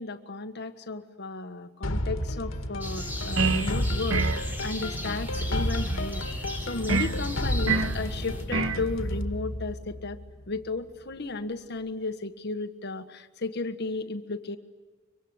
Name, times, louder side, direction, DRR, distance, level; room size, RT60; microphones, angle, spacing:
voice 1, 0.0-6.2 6.6-10.2 10.5-14.6, left 3 dB, 55° left, 9 dB, 1.6 m, -34 dB
sound 1, 1.8-10.7, left 1 dB, 85° left, 2.0 m, -32 dB
sound 2, 2.8-8.5, left 1 dB, 10° right, 4.0 m, -38 dB
sound 3, 3.4-3.7 4.1-4.5 6.9-7.2 7.7-8.0 8.5-8.8, right 3 dB, 85° right, 1.5 m, -25 dB
24.5 x 24.0 x 9.7 m, 1.3 s
head